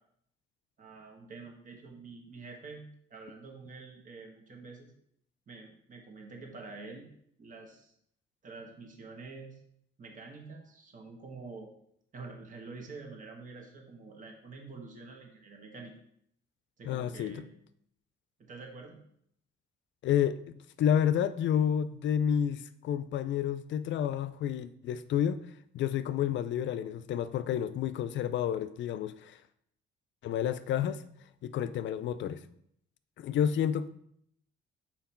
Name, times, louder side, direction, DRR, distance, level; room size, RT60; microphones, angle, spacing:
voice 1, 0.8-4.9 5.5-7.1 7.4-7.9 8.4-9.6 10.0-11.7 12.1-15.9 16.8-17.5 18.4-19.0, right 3 dB, 40° right, 1.3 m, -47 dB
voice 2, 16.8-17.3 20.0-20.4 20.8-25.4 25.7-29.4 30.2-31.0 31.4-32.4 33.2-33.9, left 9 dB, 70° left, 0.5 m, -30 dB
5.8 x 4.4 x 4.4 m
cardioid pair, 90°, 20 cm